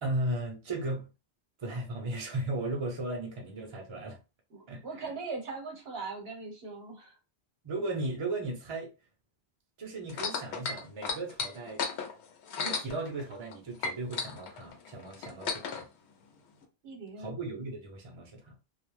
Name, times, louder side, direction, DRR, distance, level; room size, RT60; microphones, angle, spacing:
voice 1, 0.0-1.1 1.6-4.2 4.7-4.8 7.6-8.9 9.8-11.8 12.6-15.9 17.2-18.6, right 2 dB, 35° right, 0.6 m, -36 dB
voice 2, 4.5-7.2 16.8-17.3, right 4 dB, 65° right, 1.0 m, -40 dB
sound 1, 10.1-13.5 13.8-15.8 16.6-16.7, left 5 dB, 80° left, 0.9 m, -34 dB
2.4 x 2.1 x 3.1 m
omnidirectional pair, 1.1 m